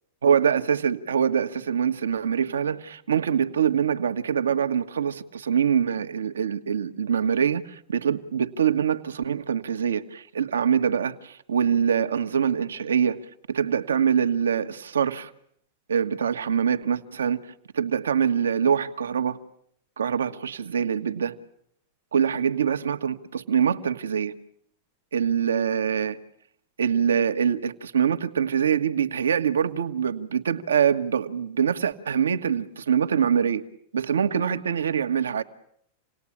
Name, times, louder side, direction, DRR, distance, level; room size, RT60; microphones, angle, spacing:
voice 1, 0.2-13.2 13.5-15.3 15.9-17.4 17.7-19.4 20.0-21.4 22.1-24.3 25.1-26.2 26.8-33.6 33.9-35.4, right 7 dB, 90° right, 1.4 m, -24 dB
28.0 x 19.0 x 8.7 m
hypercardioid pair, 105°, 0 cm